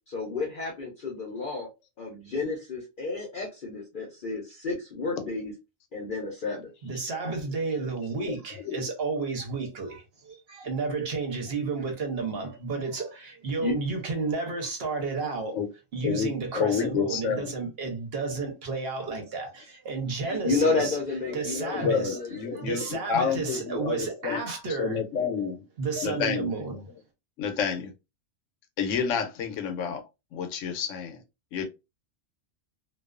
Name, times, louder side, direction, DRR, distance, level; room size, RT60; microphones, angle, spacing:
voice 1, 0.1-1.7 2.0-5.5 5.9-6.7 13.6-13.7 20.2-23.0, left 3 dB, 50° left, 0.7 m, -31 dB
voice 2, 6.8-15.6 15.9-21.0 21.3-22.2 22.5-25.0 25.4-25.5 25.8-26.9, right 4 dB, 55° right, 0.9 m, -32 dB
voice 3, 16.0-17.5 21.3-24.4 24.7-25.6 26.0-26.5 27.4-27.9 28.8-30.0 30.3-31.2 31.5-31.7, left 7 dB, 80° left, 1.0 m, -29 dB
2.3 x 2.3 x 2.3 m
omnidirectional pair, 1.3 m